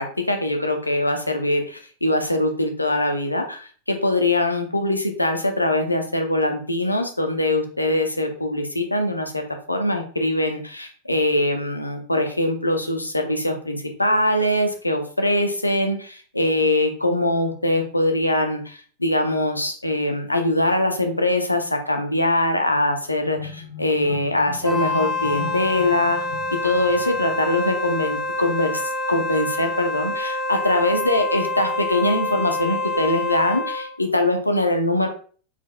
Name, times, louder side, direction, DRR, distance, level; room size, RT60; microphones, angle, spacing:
voice 1, 0.0-26.3 26.6-35.1, left 1 dB, 85° left, 5 dB, 0.6 m, -22 dB
sound 1, 23.2-28.5, left 4 dB, 60° left, 1.1 m, -38 dB
Wind instrument woodwind instrument, 24.6-33.9, left 2 dB, ahead, 0.6 m, -27 dB
4.4 x 4.0 x 2.3 m, 0.42 s
figure-of-eight pair, 90°, 0 cm